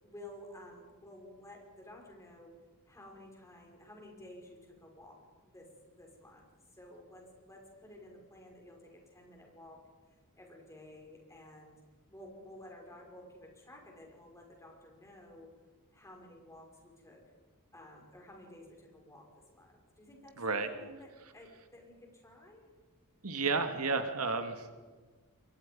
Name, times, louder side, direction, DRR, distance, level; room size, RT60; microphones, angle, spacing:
voice 1, 0.0-2.5 2.9-9.8 10.3-11.8 12.1-15.5 15.9-17.2 17.7-22.7, left 1 dB, 15° left, 0 dB, 5.8 m, -53 dB
voice 2, 20.4-20.7 23.2-24.7, right 4 dB, 80° right, 7 dB, 2.0 m, -32 dB
28.0 x 23.0 x 5.4 m, 1.4 s
head